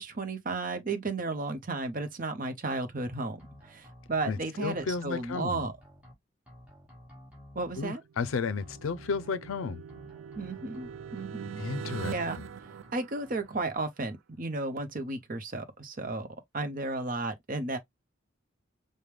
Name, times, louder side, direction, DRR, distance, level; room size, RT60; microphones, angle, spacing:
voice 1, 0.0-5.8 7.5-8.0 10.4-11.6 12.1-12.4 12.9-16.3 16.5-17.8, right 3 dB, 40° right, 0.8 m, -34 dB
sound 1, 3.1-4.4 4.7-6.1 6.5-7.9 8.2-9.6 9.9-11.3 11.6-12.9 13.2-13.8, left 1 dB, 5° right, 1.4 m, -53 dB
voice 2, 4.3-5.6 7.8-9.8 11.6-12.1, left 5 dB, 85° left, 0.4 m, -33 dB
sound 2, 8.0-13.8, right 6 dB, 80° right, 0.4 m, -42 dB
5.0 x 2.2 x 3.2 m
head